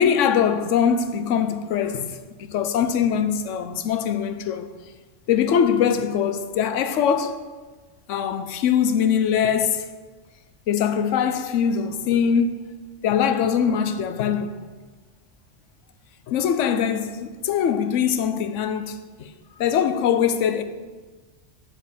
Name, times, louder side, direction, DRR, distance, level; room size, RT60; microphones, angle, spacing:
voice 1, 0.0-4.7 5.3-7.4 8.1-9.9 10.7-14.5 16.3-19.3 19.6-20.6, left 8 dB, 75° left, 1.0 m, -22 dB
8.1 x 4.5 x 7.3 m
omnidirectional pair, 1.3 m